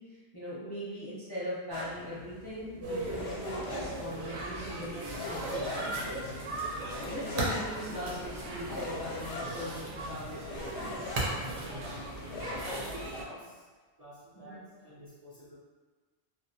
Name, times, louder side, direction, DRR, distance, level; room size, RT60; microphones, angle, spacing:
voice 1, 0.0-6.3 7.0-10.4 14.3-14.6, equal, 35° left, -10 dB, 0.4 m, -40 dB
sound 1, 1.7-12.8, left 3 dB, 85° left, 0.9 m, -43 dB
sound 2, 2.8-13.2, right 1 dB, 85° right, 0.9 m, -37 dB
voice 2, 12.5-13.7 14.0-15.6, equal, 55° right, -10 dB, 0.4 m, -49 dB
2.3 x 2.3 x 2.6 m, 1.3 s
omnidirectional pair, 1.1 m